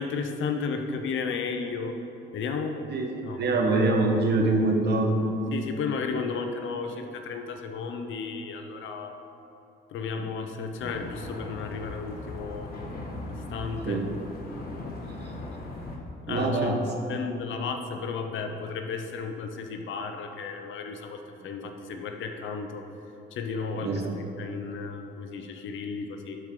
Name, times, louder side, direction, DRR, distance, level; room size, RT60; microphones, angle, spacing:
voice 1, 0.0-2.0 2.3-2.8 3.2-3.4 5.5-9.1 9.9-12.7 13.3-14.0 16.3-16.7 17.1-22.9 23.3-26.4, left 5 dB, 75° left, 5 dB, 0.8 m, -33 dB
voice 2, 2.9-5.3 10.2-10.3 13.9-14.0 16.3-16.8 23.8-24.1, right 2 dB, 60° right, 2 dB, 1.2 m, -24 dB
sound 1, 10.8-16.0, left 2 dB, 50° left, 1.5 m, -39 dB
12.0 x 4.6 x 3.8 m, 3.0 s
cardioid pair, 90°, 20 cm